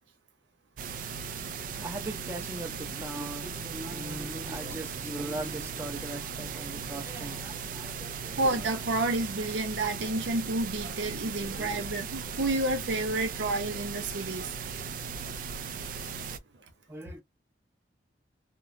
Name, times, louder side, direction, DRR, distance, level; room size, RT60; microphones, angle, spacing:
sound 1, 0.8-16.4, right 6 dB, 50° right, 0.3 m, -38 dB
voice 1, 1.3-8.7 11.2-11.8 16.9-17.2, right 1 dB, 15° right, 0.7 m, -40 dB
voice 2, 8.4-14.5 15.2-15.3, right 2 dB, 90° right, 0.7 m, -30 dB
3.0 x 2.1 x 2.5 m
head